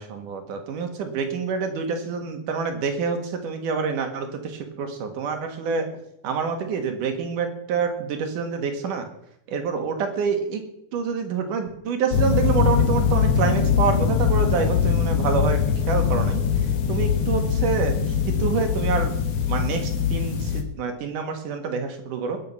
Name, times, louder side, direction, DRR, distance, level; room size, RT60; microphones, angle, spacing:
voice 1, 0.0-5.9 6.2-9.1 9.5-10.6 10.9-15.6 15.9-16.4 16.9-18.0 18.3-19.1 19.5-22.4, right 5 dB, 75° right, 6 dB, 3.2 m, -27 dB
sound 1, 12.1-20.6, left 7 dB, 55° left, 2.3 m, -22 dB
20.0 x 8.0 x 5.5 m, 0.74 s
omnidirectional pair, 3.7 m